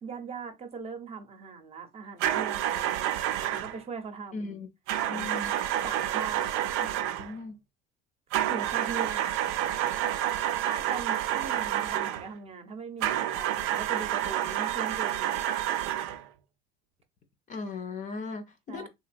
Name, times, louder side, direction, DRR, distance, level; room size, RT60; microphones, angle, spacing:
voice 1, 0.0-3.1 3.5-4.6 5.8-6.5 8.5-9.3 10.7-15.5 18.7-18.9, right 5 dB, 30° right, 0.7 m, -40 dB
sound 1, 2.2-3.8 4.9-7.3 8.3-12.3 13.0-16.2, right 12 dB, 80° right, 0.4 m, -29 dB
voice 2, 4.3-4.7 5.1-5.5 6.8-6.9 7.2-7.6 17.5-18.9, left 3 dB, 40° left, 0.6 m, -37 dB
2.9 x 2.7 x 2.5 m
supercardioid pair, 105°, 21 cm